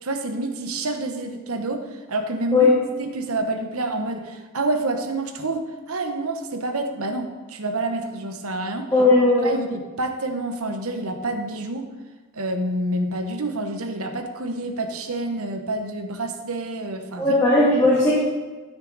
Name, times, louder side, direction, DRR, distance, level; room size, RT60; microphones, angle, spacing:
voice 1, 0.0-2.7 3.0-8.9 9.4-11.9 12.3-17.4, right 2 dB, 85° right, 6 dB, 1.1 m, -28 dB
voice 2, 8.9-9.6 17.2-18.2, left 2 dB, 15° left, -9 dB, 2.2 m, -17 dB
13.0 x 6.5 x 4.0 m, 1.3 s
head